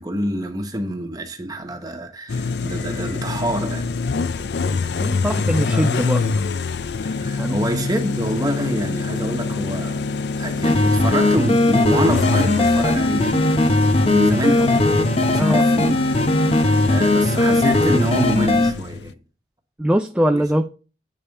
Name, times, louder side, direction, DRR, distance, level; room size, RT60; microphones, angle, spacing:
voice 1, 0.0-3.9 5.2-5.9 7.0-14.9 15.3-16.0 16.3-19.2 20.3-20.4, right 1 dB, 20° right, 1.2 m, -26 dB
sound 1, 2.3-19.1, left 4 dB, 70° left, 0.5 m, -25 dB
voice 2, 4.7-6.3 7.4-7.6 15.4-15.7 19.8-20.7, equal, 5° right, 0.4 m, -22 dB
sound 2, 10.6-18.7, left 2 dB, 35° left, 0.8 m, -18 dB
8.3 x 5.6 x 4.1 m
head